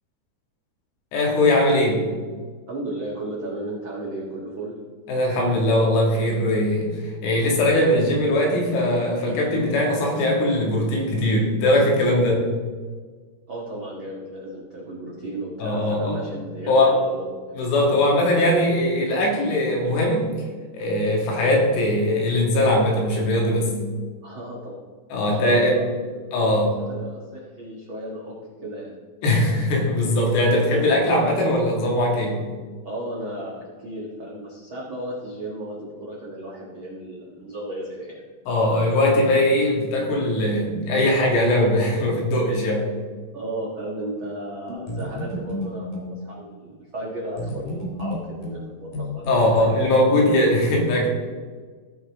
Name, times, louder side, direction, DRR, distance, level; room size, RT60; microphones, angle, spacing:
voice 1, 1.1-2.1 5.1-12.5 15.6-16.2 16.7-17.0 17.6-20.3 20.7-23.7 25.1-25.8 26.3-26.8 29.2-32.4 38.5-42.9 49.3-51.1, left 1 dB, 80° left, -1 dB, 4.1 m, -20 dB
voice 2, 2.7-4.7 13.5-17.5 24.2-24.8 25.2-25.8 26.1-26.3 26.8-28.3 28.6-28.9 32.8-38.2 43.3-49.6, right 1 dB, 80° right, -5 dB, 1.1 m, -34 dB
sound 1, 44.7-46.2 47.4-49.7, left 1 dB, 55° left, 3.8 m, -32 dB
17.0 x 5.7 x 3.5 m, 1.5 s
omnidirectional pair, 4.9 m